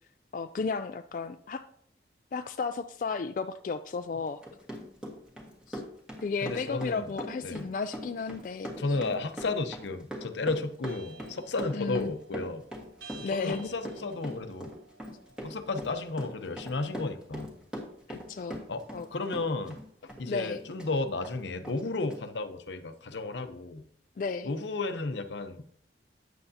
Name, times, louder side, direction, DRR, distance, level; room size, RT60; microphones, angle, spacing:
voice 1, 0.3-1.6 2.3-4.4 5.7-5.8 6.2-9.0 11.7-12.1 13.2-13.7 18.1-18.6 18.9-19.1 20.2-20.6 24.2-24.5, left 4 dB, 45° left, 8 dB, 0.3 m, -33 dB
Run, 4.3-19.1 19.3-20.9 21.2-21.4 21.6-21.8 22.1-22.2, equal, 5° right, 1.5 m, -41 dB
voice 2, 6.4-7.1 7.4-7.7 8.8-12.6 13.2-14.7 15.4-17.5 18.7-18.8 19.1-23.8 24.4-25.6, left 3 dB, 85° left, 9 dB, 0.7 m, -33 dB
sound 1, 10.8-23.0, right 4 dB, 80° right, 2.6 m, -56 dB
9.3 x 7.8 x 2.8 m, 0.63 s
head